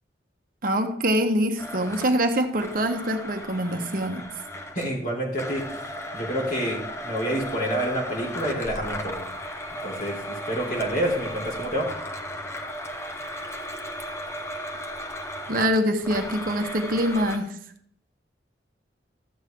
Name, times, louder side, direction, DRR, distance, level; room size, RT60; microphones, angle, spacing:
voice 1, 0.6-4.2 15.5-17.6, equal, 50° right, 5 dB, 0.9 m, -24 dB
Domestic sounds home sounds, 1.6-5.0 5.4-17.4, equal, 15° left, 0.8 m, -36 dB
voice 2, 4.7-5.6 6.1-9.3 9.8-11.9, right 1 dB, 50° left, -2 dB, 3.6 m, -28 dB
13.0 x 8.0 x 3.6 m, 0.64 s
head